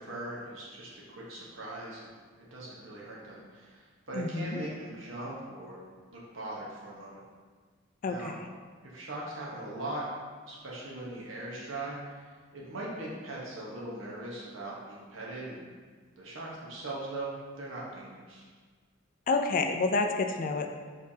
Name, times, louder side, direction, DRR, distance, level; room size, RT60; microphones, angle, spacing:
voice 1, 0.0-7.2 8.1-8.4 8.9-10.0 10.5-12.2 12.5-15.6 16.2-18.5, right 2 dB, 80° right, -5 dB, 1.0 m, -40 dB
voice 2, 4.1-4.6 8.0-8.5 19.3-20.7, left 3 dB, 45° left, 5 dB, 0.3 m, -29 dB
4.9 x 3.3 x 2.7 m, 1.5 s
head